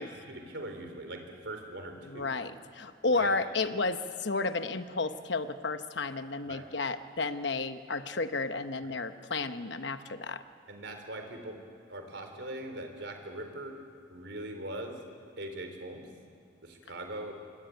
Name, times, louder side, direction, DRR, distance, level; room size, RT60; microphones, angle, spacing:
voice 1, 0.0-2.3 3.1-3.3 6.5-6.6 8.8-8.9 10.7-11.6 11.9-13.7 14.1-15.0 15.4-16.1 16.6-17.4, right 1 dB, 65° right, 5 dB, 3.9 m, -41 dB
voice 2, 2.0-10.4, left 3 dB, 65° left, 10 dB, 1.0 m, -32 dB
26.0 x 23.5 x 9.4 m, 2.4 s
head